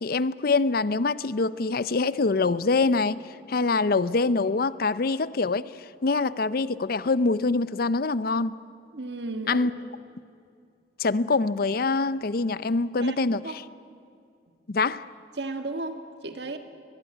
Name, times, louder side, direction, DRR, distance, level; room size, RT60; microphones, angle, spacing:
voice 1, 0.0-3.2 3.5-5.7 6.0-8.6 9.5-9.7 11.0-13.6 14.7-15.0, left 3 dB, 55° left, 17 dB, 0.6 m, -24 dB
voice 2, 8.9-9.7 13.0-13.6 15.4-16.6, right 2 dB, 65° right, 7 dB, 1.8 m, -34 dB
23.0 x 20.5 x 9.8 m, 2.4 s
head